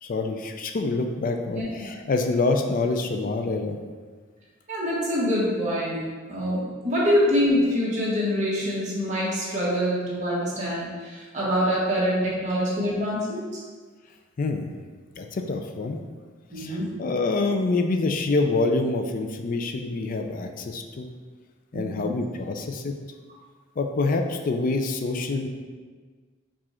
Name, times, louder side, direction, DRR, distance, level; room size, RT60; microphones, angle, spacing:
voice 1, 0.0-3.8 14.4-14.7 15.2-16.0 16.5-21.1 21.7-22.9 23.8-25.5, left 3 dB, 45° left, 5 dB, 0.4 m, -26 dB
voice 2, 1.5-1.9 4.7-6.0 6.3-13.5 16.5-16.9 21.7-22.1, equal, 35° right, -7 dB, 1.3 m, -25 dB
4.8 x 2.4 x 4.3 m, 1.5 s
head